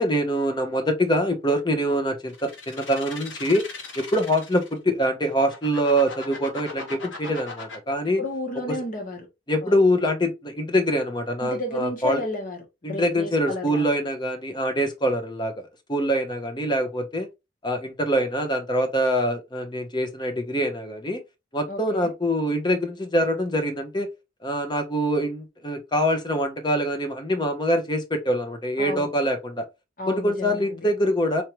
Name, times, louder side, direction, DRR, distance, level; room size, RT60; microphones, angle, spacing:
voice 1, 0.0-3.7 4.0-8.2 9.5-12.2 12.8-15.5 15.9-17.3 17.6-21.2 21.5-24.1 24.4-29.7 30.1-31.4, equal, 25° left, 0.8 m, -24 dB
sound 1, 2.3-4.8 5.3-7.8, left 4 dB, 70° left, 1.5 m, -39 dB
voice 2, 8.2-9.3 9.6-9.7 11.4-12.6 12.9-13.8 21.7-22.1 28.8-29.1 30.0-30.8, left 2 dB, 45° left, 1.3 m, -31 dB
4.5 x 2.7 x 3.1 m
head